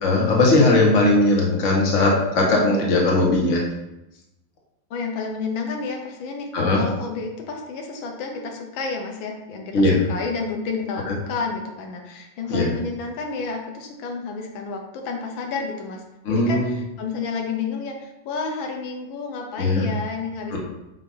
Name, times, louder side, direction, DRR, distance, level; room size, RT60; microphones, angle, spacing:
voice 1, 0.0-3.6 6.5-6.8 9.7-10.0 11.0-11.2 12.5-12.7 16.2-16.8 19.6-19.9 20.5-20.6, left 2 dB, 40° left, -2 dB, 1.6 m, -19 dB
voice 2, 4.9-6.5 6.7-16.0 16.3-20.6, left 4 dB, 85° left, 2 dB, 1.6 m, -30 dB
7.5 x 2.8 x 5.4 m, 0.93 s
omnidirectional pair, 2.1 m